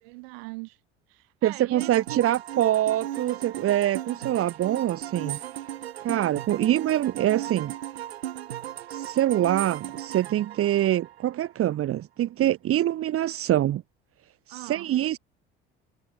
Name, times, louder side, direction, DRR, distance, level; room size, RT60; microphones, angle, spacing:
voice 1, 0.0-0.8 1.1-2.2 14.5-14.9, right 30 dB, 75° right, 2.4 m, -41 dB
voice 2, 1.4-5.4 6.0-7.7 8.9-13.8 14.5-15.2, right 12 dB, 45° right, 1.4 m, -25 dB
sound 1, 1.8-11.5, right 12 dB, 90° right, 1.5 m, -37 dB
hypercardioid pair, 70°, 30 cm